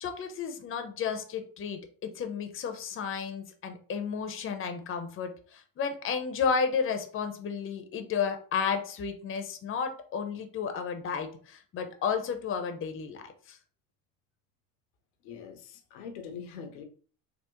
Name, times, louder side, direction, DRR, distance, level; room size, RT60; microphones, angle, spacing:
voice 1, 0.0-13.6, left 6 dB, 30° left, 6 dB, 0.6 m, -32 dB
voice 2, 15.2-16.8, left 6 dB, 85° left, 7 dB, 0.7 m, -43 dB
3.4 x 2.0 x 3.0 m, 0.42 s
supercardioid pair, 85°, 42 cm